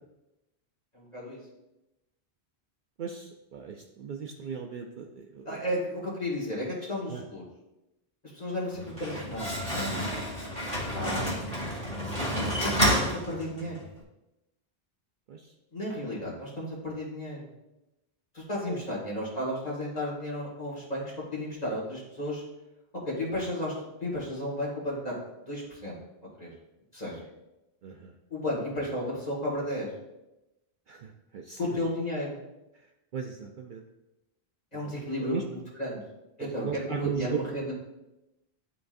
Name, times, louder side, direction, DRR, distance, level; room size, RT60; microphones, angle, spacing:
voice 1, 0.9-1.4 5.5-7.4 8.2-10.0 10.8-11.4 12.0-13.8 15.7-17.5 18.3-22.4 23.1-23.7 24.0-25.2 25.4-26.0 26.4-26.5 26.9-27.2 28.3-29.9 31.6-32.4 34.7-36.0 36.4-37.7, left 1 dB, 40° left, -5 dB, 2.1 m, -33 dB
voice 2, 3.0-5.6 7.1-7.2 9.1-9.2 15.3-15.5 18.7-18.8 27.8-28.1 30.9-31.6 32.7-33.8 34.8-35.4 36.4-37.4, right 6 dB, 60° right, 2 dB, 0.6 m, -37 dB
Slam, 8.7-13.8, equal, 5° left, 1.9 m, -30 dB
11.0 x 4.0 x 2.6 m, 0.95 s
omnidirectional pair, 1.1 m